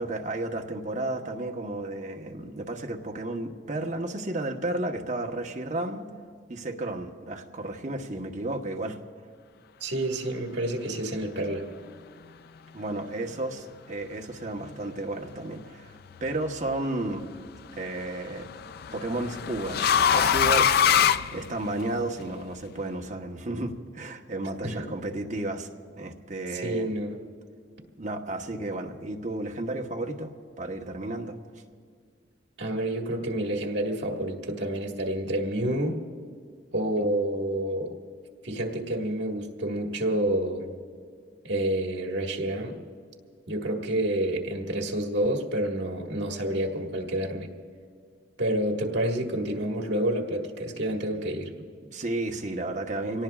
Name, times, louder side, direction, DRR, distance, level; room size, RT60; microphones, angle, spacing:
voice 1, 0.0-6.1 6.5-9.0 12.7-15.9 16.2-17.3 17.7-18.5 18.9-26.9 28.0-30.3 30.6-31.4 37.0-37.1 51.6-53.2, right 2 dB, 40° right, 2 dB, 1.1 m, -33 dB
voice 2, 9.8-11.7 24.6-24.8 26.5-27.2 32.6-36.0 36.7-38.0 38.4-40.7 41.4-42.8 43.5-47.5 48.4-51.5, right 1 dB, 75° right, 1 dB, 1.8 m, -28 dB
sound 1, 16.1-16.6 18.0-22.0, left 8 dB, 55° left, 0.3 m, -23 dB
25.5 x 18.0 x 2.4 m, 2.1 s
head